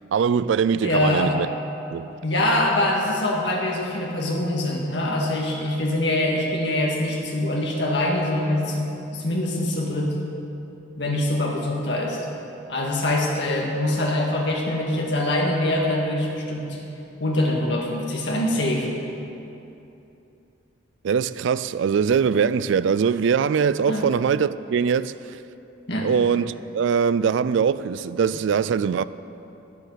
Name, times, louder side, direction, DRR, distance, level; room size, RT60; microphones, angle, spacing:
voice 1, 0.1-1.5 1.9-2.2 21.0-25.4 26.0-29.0, right 6 dB, 70° right, 0.3 m, -22 dB
voice 2, 0.8-1.3 2.2-10.1 11.0-12.2 12.7-16.8 17.2-18.9 23.9-24.0 25.9-26.1, left 1 dB, 60° left, 2.1 m, -24 dB
10.5 x 8.4 x 8.0 m
head